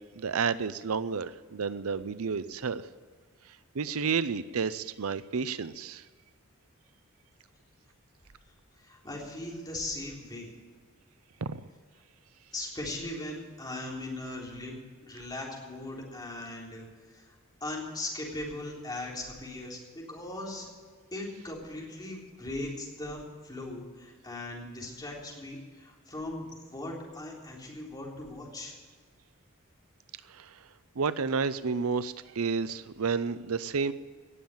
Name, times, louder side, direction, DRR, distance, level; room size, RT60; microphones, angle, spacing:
voice 1, 0.2-2.8 3.7-6.0 11.4-11.5 30.3-30.5 31.0-33.9, right 5 dB, 80° right, 15 dB, 0.6 m, -31 dB
voice 2, 8.8-10.5 12.5-14.7 15.0-16.8 17.1-17.3 17.6-20.7 21.1-28.7, left 2 dB, 20° left, -3 dB, 3.8 m, -39 dB
18.0 x 7.3 x 9.2 m, 1.5 s
head